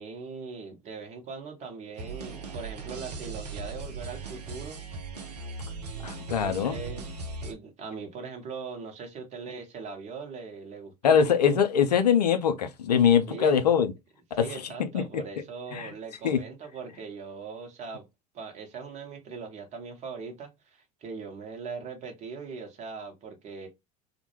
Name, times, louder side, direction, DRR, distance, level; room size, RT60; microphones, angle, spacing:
voice 1, 0.0-4.8 5.9-6.1 6.4-7.1 7.4-11.2 13.3-13.5 14.3-18.0 18.3-23.7, right 5 dB, 35° right, 0.9 m, -40 dB
sound 1, 2.0-7.5, right 3 dB, 80° right, 0.5 m, -38 dB
voice 2, 6.0-6.8 11.0-13.9 14.4-14.5 14.9-15.2 15.7-15.9 16.2-16.4, left 7 dB, 80° left, 0.4 m, -22 dB
2.1 x 2.1 x 2.9 m
figure-of-eight pair, 75°, 20 cm